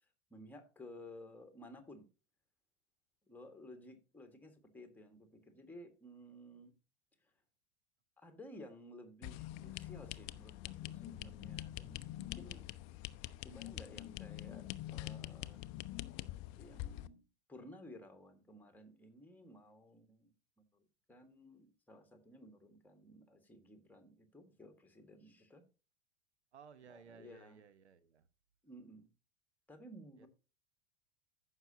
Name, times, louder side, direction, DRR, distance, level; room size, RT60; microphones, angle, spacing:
voice 1, 0.3-2.1 3.3-6.7 8.2-12.7 13.4-15.6 16.6-17.2 17.5-20.8 21.1-25.6 26.9-27.6 28.6-29.1 29.7-30.3, equal, 5° left, 1.6 m, -55 dB
sound 1, 9.2-17.1, left 15 dB, 35° left, 0.5 m, -45 dB
voice 2, 26.5-28.3 30.2-30.3, right 6 dB, 80° right, 1.0 m, -58 dB
14.5 x 5.8 x 2.7 m
figure-of-eight pair, 85°, 33 cm